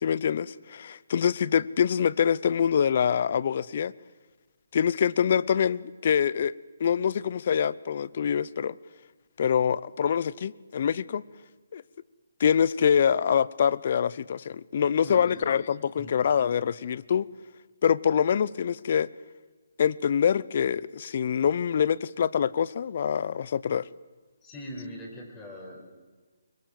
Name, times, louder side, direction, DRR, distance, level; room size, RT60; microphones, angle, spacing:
voice 1, 0.0-3.9 4.7-6.5 6.8-8.8 9.4-11.2 11.7-11.8 12.4-17.3 17.8-19.1 19.8-23.9, left 8 dB, 50° left, 20 dB, 0.7 m, -25 dB
voice 2, 15.0-15.6 16.0-16.1 24.4-25.9, equal, 15° left, 0 dB, 5.6 m, -41 dB
24.5 x 22.0 x 7.7 m, 1.4 s
hypercardioid pair, 150°, 0 cm